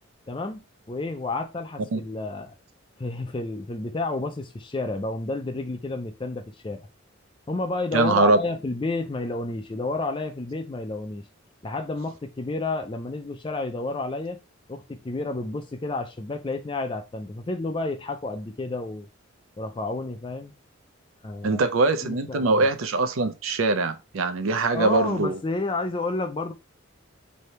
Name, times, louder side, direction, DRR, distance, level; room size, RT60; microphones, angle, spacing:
voice 1, 0.3-0.6 0.9-2.5 3.0-6.9 7.5-11.3 11.6-14.4 14.7-19.1 19.6-20.5 21.2-21.7 22.0-22.7 24.7-26.5, left 2 dB, 25° left, 0.4 m, -30 dB
voice 2, 7.9-8.4 21.4-25.4, right 3 dB, 75° right, 0.5 m, -22 dB
3.3 x 2.7 x 4.3 m
head